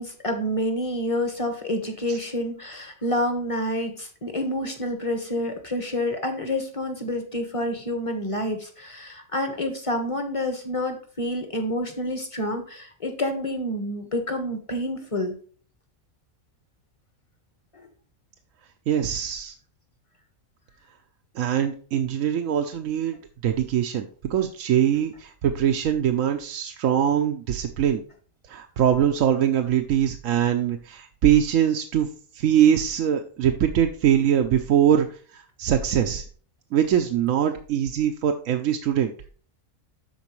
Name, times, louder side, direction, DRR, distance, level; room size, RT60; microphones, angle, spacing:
voice 1, 0.0-15.3, left 1 dB, 25° left, 5 dB, 1.3 m, -28 dB
voice 2, 18.9-19.5 21.4-23.2 23.4-28.0 28.5-32.1 32.3-35.1 35.3-36.2 36.7-39.1, right 9 dB, 80° right, 4 dB, 1.0 m, -22 dB
12.5 x 4.5 x 3.1 m, 0.42 s
omnidirectional pair, 1.4 m